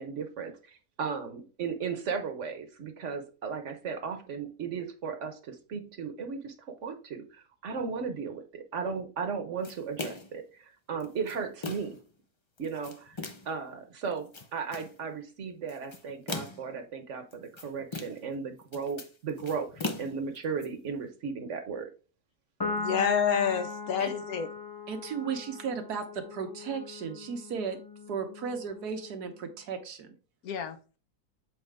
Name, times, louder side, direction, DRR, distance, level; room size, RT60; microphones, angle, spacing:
voice 1, 0.0-12.0 12.6-13.2 13.4-21.9, right 5 dB, 55° right, 1.2 m, -36 dB
sound 1, 9.6-10.4 11.0-12.0 12.6-13.6 14.1-15.0 15.7-16.7 17.3-18.3 18.6-20.7, left 3 dB, 45° left, 0.3 m, -39 dB
Piano, 22.6-29.3, left 3 dB, 20° left, 0.7 m, -40 dB
voice 2, 22.7-24.5 30.4-30.8, left 7 dB, 70° left, 1.3 m, -28 dB
voice 3, 24.9-27.8 28.1-30.1, right 6 dB, 85° right, 1.6 m, -35 dB
7.7 x 4.2 x 3.4 m
omnidirectional pair, 1.6 m